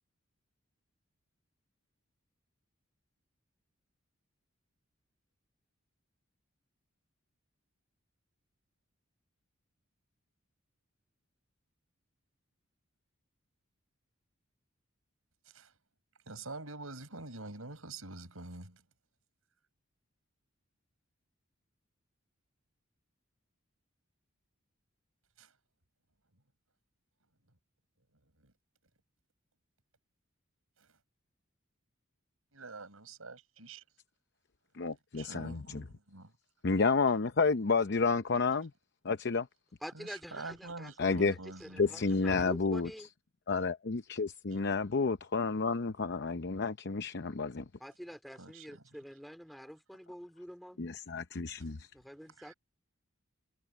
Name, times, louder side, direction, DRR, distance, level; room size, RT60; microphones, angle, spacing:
voice 1, 16.3-18.8 25.4-25.5 28.4-28.5 30.8-31.0 32.5-33.8 35.1-36.3 39.9-42.0 48.4-49.0 52.3-52.5, right 3 dB, 85° right, 5.4 m, -46 dB
voice 2, 34.7-35.8 36.6-38.7 39.0-39.5 41.0-41.3 41.8-42.9 43.5-47.6 50.8-51.9, left 4 dB, 55° left, 0.7 m, -30 dB
voice 3, 39.8-43.1 47.8-50.8 51.9-52.5, equal, ahead, 3.4 m, -46 dB
head